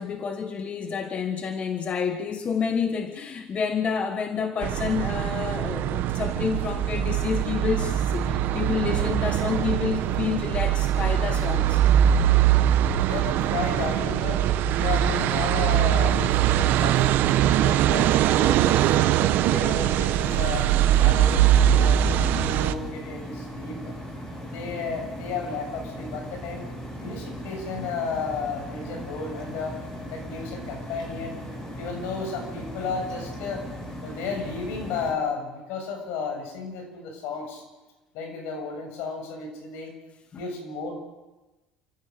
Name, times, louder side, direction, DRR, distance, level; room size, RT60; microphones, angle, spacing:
voice 1, 0.0-11.8 40.3-40.4, left 6 dB, 35° left, 7 dB, 1.5 m, -29 dB
sound 1, 4.6-22.7, right 11 dB, 60° right, 1.1 m, -22 dB
voice 2, 13.0-14.4 14.8-18.1 18.4-23.9 24.4-26.7 27.0-29.8 30.1-31.4 31.8-33.6 34.0-37.6 38.1-40.0 40.3-40.9, left 5 dB, 75° left, 3 dB, 7.4 m, -33 dB
sound 2, 20.1-35.1, equal, 20° left, 8.0 m, -38 dB
30.0 x 15.0 x 6.8 m, 1.1 s
cardioid pair, 120°, 4 cm